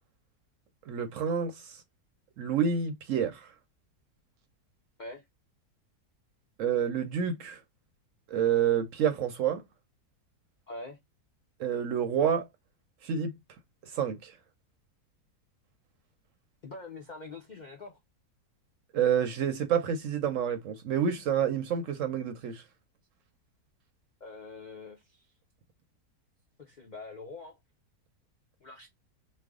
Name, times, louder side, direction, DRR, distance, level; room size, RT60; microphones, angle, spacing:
voice 1, 0.9-1.8 2.4-3.4 6.6-7.6 8.3-9.6 11.6-12.5 13.0-13.3 13.9-14.3 18.9-22.6, right 8 dB, 65° right, 0.8 m, -28 dB
voice 2, 10.7-11.0 16.6-18.0 24.2-25.3 26.6-27.6 28.6-28.9, left 3 dB, 75° left, 0.4 m, -44 dB
3.3 x 2.1 x 3.5 m
omnidirectional pair, 1.7 m